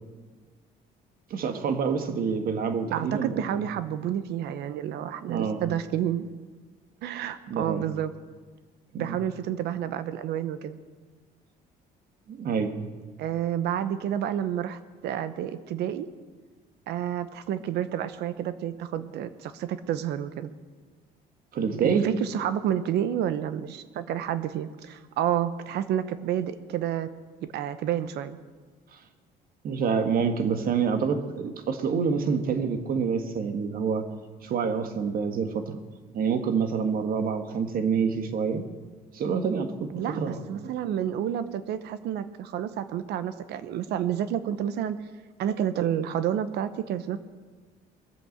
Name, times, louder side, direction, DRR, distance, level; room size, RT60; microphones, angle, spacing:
voice 1, 1.3-3.4 5.2-5.6 7.5-7.9 8.9-9.2 12.3-12.8 21.5-22.1 29.6-34.1 34.4-35.8 36.1-38.6 39.1-40.4, right 6 dB, 60° right, 8 dB, 1.6 m, -27 dB
voice 2, 2.9-6.3 7.0-8.1 8.9-10.8 13.2-16.1 16.9-20.5 21.8-27.1 27.5-28.4 39.9-45.0 45.4-47.2, right 10 dB, 75° right, 13 dB, 0.9 m, -30 dB
20.5 x 7.9 x 7.9 m, 1.4 s
cardioid pair, 110°, 17 cm